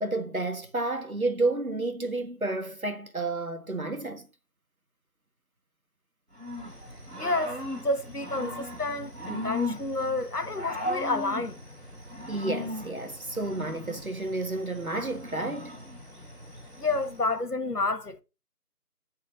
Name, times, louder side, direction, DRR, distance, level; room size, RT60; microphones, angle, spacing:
voice 1, 0.0-4.3 12.3-15.7, right 2 dB, 60° right, 1.7 m, -31 dB
Growling / Cricket, 6.3-17.3, left 1 dB, 45° right, 3.4 m, -38 dB
voice 2, 7.2-11.6 16.8-18.2, left 2 dB, 75° left, 1.3 m, -30 dB
8.7 x 4.4 x 5.1 m
figure-of-eight pair, 180°, 47 cm